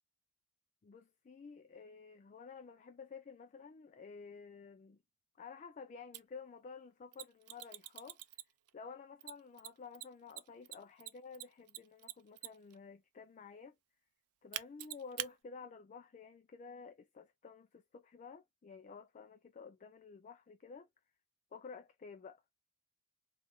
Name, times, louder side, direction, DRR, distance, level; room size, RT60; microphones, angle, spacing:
voice 1, 0.8-5.0 5.4-8.2 8.7-13.8 14.4-20.9 21.5-22.4, left 5 dB, 35° left, 0.3 m, -52 dB
Mechanisms, 6.1-6.2 7.1-8.7 9.2-12.7 14.5-15.3, right 14 dB, 90° right, 0.4 m, -44 dB
3.6 x 2.4 x 3.7 m
head